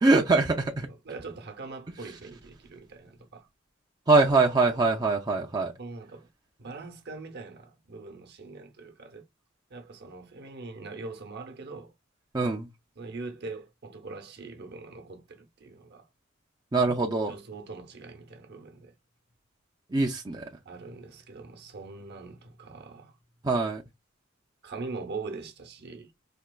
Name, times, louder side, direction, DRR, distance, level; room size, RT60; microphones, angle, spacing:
voice 1, 0.0-0.9 4.1-5.7 12.3-12.7 16.7-17.3 19.9-20.4 23.4-23.8, right 3 dB, 20° right, 0.4 m, -23 dB
voice 2, 1.0-3.5 5.8-6.3 6.6-9.2 9.7-11.9 13.0-16.1 17.3-18.9 20.6-23.1 24.6-26.1, right 3 dB, 55° right, 0.8 m, -42 dB
4.3 x 2.9 x 2.2 m
head